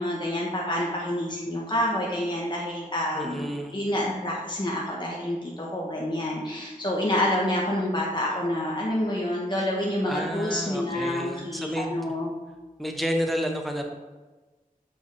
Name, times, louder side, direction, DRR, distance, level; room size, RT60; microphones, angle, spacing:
voice 1, 0.0-12.3, left 1 dB, 30° left, -4 dB, 1.3 m, -28 dB
voice 2, 3.1-3.8 9.6-9.7 10.1-12.1 12.8-13.9, equal, ahead, 3 dB, 0.9 m, -30 dB
7.4 x 5.6 x 3.4 m, 1.2 s
wide cardioid pair, 50°, 15 cm